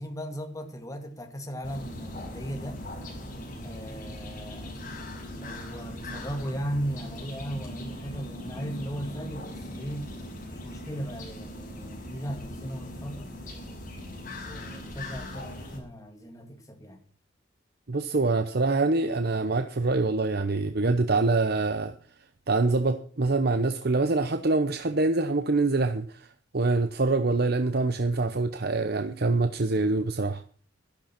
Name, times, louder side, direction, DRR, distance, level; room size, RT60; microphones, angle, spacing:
voice 1, 0.0-2.8 3.6-4.8 5.3-10.1 10.6-13.3 14.4-17.0, equal, 20° left, 2.1 m, -37 dB
sound 1, 1.6-15.8, left 1 dB, 45° left, 6.2 m, -39 dB
voice 2, 17.9-21.9 22.5-26.3 26.5-30.4, right 3 dB, 55° right, 0.9 m, -25 dB
12.5 x 12.0 x 6.0 m
head